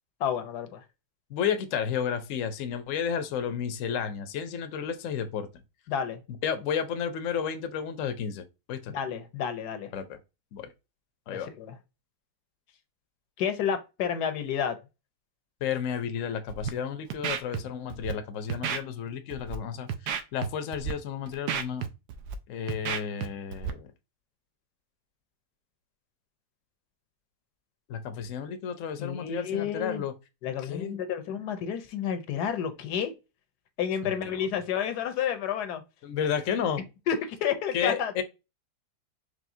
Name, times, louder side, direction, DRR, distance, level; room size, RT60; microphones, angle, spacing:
voice 1, 0.2-0.8 5.9-6.2 8.9-9.9 11.3-11.8 13.4-14.8 29.0-30.0 30.4-33.1 33.8-35.8 36.8-38.2, left 8 dB, 80° left, 1.2 m, -30 dB
voice 2, 1.3-5.5 6.4-9.0 9.9-10.2 10.5-10.7 11.3-11.5 15.6-21.9 22.5-23.9 27.9-30.1 30.7-31.0 34.0-34.2 36.0-36.8 37.7-38.2, left 7 dB, 65° left, 0.9 m, -32 dB
Scratching (performance technique), 16.5-16.7 17.1-17.6 17.9-18.1 18.5-18.8 19.3-19.6 19.9-20.5 20.7-20.9 21.3-22.3 22.7-23.3 23.5-23.7, right 8 dB, 80° right, 1.2 m, -31 dB
4.9 x 3.2 x 2.6 m
omnidirectional pair, 1.7 m